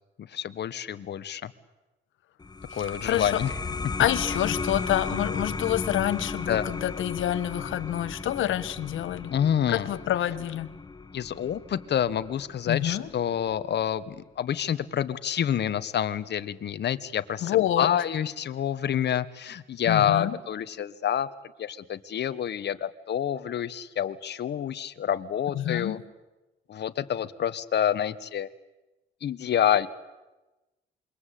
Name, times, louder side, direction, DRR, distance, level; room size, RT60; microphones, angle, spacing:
voice 1, 0.3-1.5 2.7-3.5 4.4-4.5 6.5-6.7 9.3-9.9 11.1-21.3 21.6-26.0 26.7-28.5 29.2-29.9, left 9 dB, 60° left, 13 dB, 1.4 m, -28 dB
sound 1, 2.4-13.6, left 4 dB, 20° left, 1.2 m, -35 dB
voice 2, 3.0-3.4 4.0-9.3 9.7-10.7 12.7-13.1 17.4-17.9 19.9-20.4 25.5-26.0, left 12 dB, 80° left, 14 dB, 1.4 m, -27 dB
27.0 x 23.5 x 8.5 m, 1.1 s
cardioid pair, 90°, 20 cm